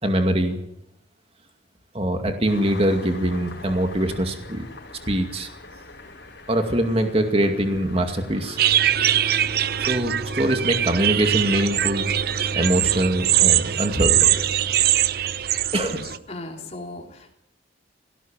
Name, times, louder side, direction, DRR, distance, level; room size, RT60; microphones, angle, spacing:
voice 1, 0.0-0.6 1.9-4.6 5.1-5.5 6.5-8.6 9.8-12.1 12.6-14.3 15.7-16.0, right 1 dB, 30° right, 5 dB, 2.3 m, -23 dB
Engine starting, 2.5-12.2, left 3 dB, 65° left, 5.2 m, -44 dB
sound 1, 8.6-16.2, right 11 dB, 55° right, 0.7 m, -22 dB
voice 2, 15.8-17.3, left 2 dB, 35° left, 2 dB, 3.5 m, -37 dB
18.5 x 17.0 x 9.1 m, 0.79 s
head